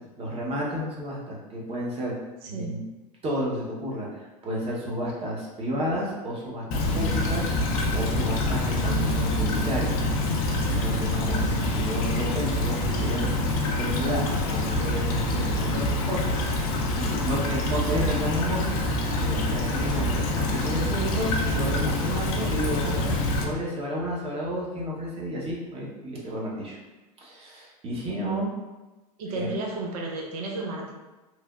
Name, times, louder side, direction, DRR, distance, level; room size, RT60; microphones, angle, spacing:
voice 1, 0.2-2.1 2.5-2.9 3.2-10.0 10.3-13.4 13.8-16.4 16.6-18.7 19.2-26.8 27.2-28.5 29.3-29.5, equal, 30° right, -4 dB, 0.9 m, -31 dB
voice 2, 2.4-2.7 29.2-30.9, right 2 dB, 65° right, 0 dB, 0.6 m, -32 dB
Stream / Trickle dribble, 6.7-23.4, left 1 dB, 60° left, 0.5 m, -26 dB
3.2 x 2.1 x 2.4 m, 1.1 s
hypercardioid pair, 100°, 21 cm